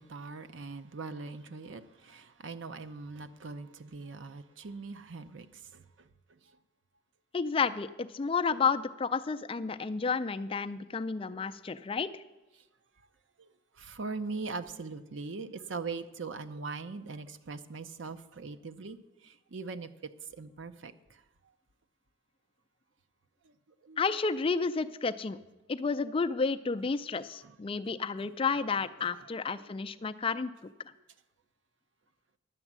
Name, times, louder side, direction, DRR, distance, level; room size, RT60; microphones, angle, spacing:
voice 1, 0.0-5.5 5.7-5.8 13.4-13.5 13.8-19.0 19.2-19.9 20.4-20.9 23.8-24.0 29.1-29.6, right 4 dB, 70° right, 0.6 m, -41 dB
voice 2, 7.3-12.2 24.0-25.4 25.7-30.5, left 5 dB, 25° left, 0.4 m, -31 dB
11.0 x 7.9 x 7.4 m
head